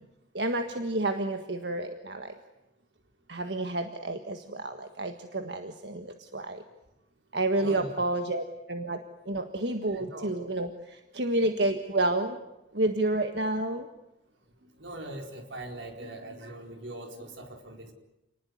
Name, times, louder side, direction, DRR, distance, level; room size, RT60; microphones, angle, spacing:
voice 1, 0.3-2.3 3.3-6.6 7.3-12.4 12.7-13.9, right 2 dB, 65° right, 7 dB, 1.6 m, -30 dB
voice 2, 9.9-10.3 14.6-17.9, right 1 dB, 85° right, 4 dB, 4.7 m, -41 dB
29.0 x 19.5 x 9.6 m, 0.94 s
head